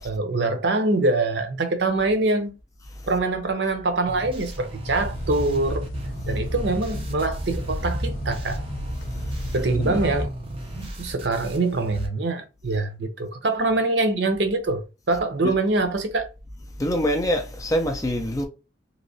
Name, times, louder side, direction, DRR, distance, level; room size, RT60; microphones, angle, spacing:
voice 1, 0.0-2.5 3.1-5.9 6.3-8.6 9.5-10.3 10.7-16.3, right 2 dB, 65° right, 0.7 m, -24 dB
sound 1, 4.1-12.1, right 1 dB, 30° right, 0.6 m, -36 dB
sound 2, 4.8-10.3, equal, 85° left, 0.6 m, -31 dB
voice 2, 9.0-9.5 9.8-10.0 10.7-10.9 15.4-15.5 16.7-18.4, equal, 20° left, 0.5 m, -26 dB
3.1 x 2.7 x 2.6 m
head